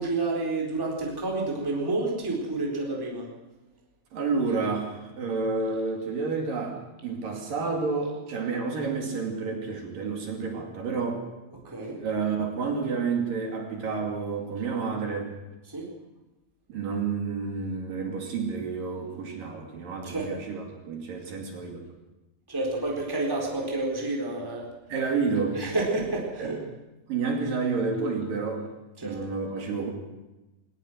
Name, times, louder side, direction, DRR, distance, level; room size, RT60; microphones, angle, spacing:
voice 1, 0.0-3.3 11.6-12.0 15.7-15.9 20.0-20.3 22.5-24.7 25.5-26.6 29.0-29.3, right 2 dB, 5° right, -1 dB, 3.4 m, -29 dB
voice 2, 4.1-11.2 12.0-15.3 16.7-21.8 24.9-25.6 26.4-26.6 27.1-28.6 29.0-29.9, right 4 dB, 50° right, 2 dB, 3.7 m, -30 dB
21.5 x 19.5 x 6.3 m, 1.0 s
omnidirectional pair, 5.4 m